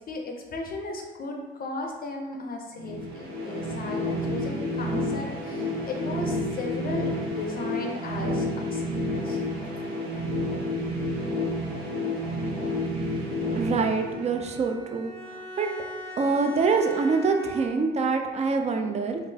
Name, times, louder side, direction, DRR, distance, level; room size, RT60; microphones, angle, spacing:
voice 1, 0.1-9.4, left 2 dB, 50° left, 1 dB, 0.5 m, -36 dB
sound 1, 2.8-14.7, left 1 dB, 80° right, 0.9 m, -30 dB
Bowed string instrument, 13.6-18.1, right 1 dB, 10° left, 0.7 m, -41 dB
voice 2, 13.6-15.1 15.6-15.7 16.2-19.2, right 4 dB, 35° right, 5 dB, 0.4 m, -25 dB
3.7 x 2.4 x 2.7 m, 1.3 s
cardioid pair, 90°, 20 cm